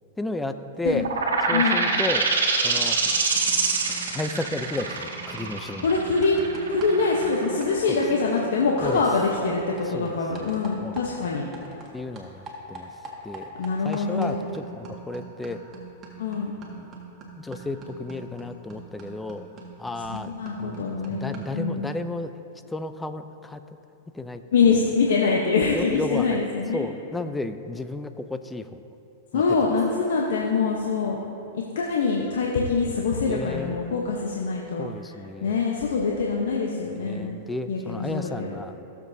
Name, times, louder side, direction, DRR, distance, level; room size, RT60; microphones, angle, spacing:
voice 1, 0.2-1.1 1.5-2.3 2.6-3.0 4.1-5.9 7.9-8.0 8.8-9.0 9.9-10.2 10.8-11.0 11.9-12.9 13.2-13.5 13.8-15.6 16.7-16.9 17.4-19.5 19.8-20.3 20.6-22.3 22.7-23.6 24.1-24.8 25.7-26.4 26.7-28.8 29.3-29.4 33.3-33.8 34.8-35.6 37.0-38.8, left 2 dB, 10° left, 9 dB, 0.5 m, -33 dB
sound 1, 1.0-8.3, right 4 dB, 80° right, 1.5 m, -25 dB
voice 2, 1.5-2.0 5.8-6.4 6.7-11.5 13.6-14.5 16.2-16.6 20.1-21.9 24.5-26.9 29.3-31.2 31.5-34.9 35.4-37.4 37.7-38.6, left 4 dB, 75° left, -1 dB, 1.0 m, -24 dB
sound 2, 2.2-2.5 2.8-11.9 12.2-21.6, right 3 dB, 25° right, 1.8 m, -44 dB
16.5 x 7.4 x 2.7 m, 2.8 s
hypercardioid pair, 110°, 0 cm